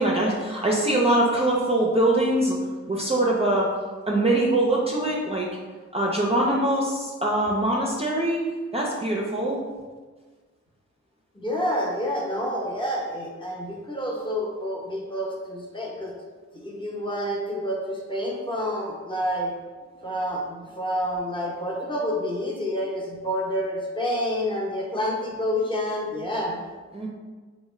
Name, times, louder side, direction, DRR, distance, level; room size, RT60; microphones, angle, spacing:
voice 1, 0.0-2.6 2.9-3.7 4.1-5.5 5.9-9.6 26.9-27.1, right 1 dB, 20° right, -3 dB, 0.5 m, -23 dB
voice 2, 11.3-16.1 16.6-19.5 20.0-26.6, equal, 15° left, -3 dB, 0.8 m, -28 dB
3.5 x 2.2 x 3.1 m, 1.4 s
cardioid pair, 60°, 29 cm